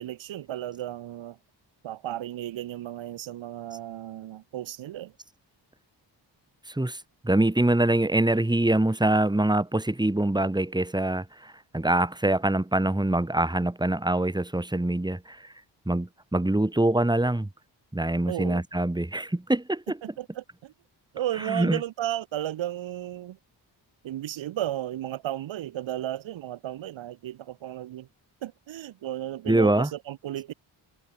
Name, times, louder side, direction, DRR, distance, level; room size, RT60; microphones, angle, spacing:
voice 1, 0.0-1.4 1.8-5.1 18.3-18.6 20.0-20.7 21.1-23.4 24.0-28.1 28.4-30.5, right 12 dB, 80° right, 1.1 m, -34 dB
voice 2, 6.7-15.5 15.9-17.5 17.9-20.0 21.3-21.8 29.5-29.9, right 1 dB, 10° right, 2.1 m, -24 dB
cardioid pair, 60°, 45 cm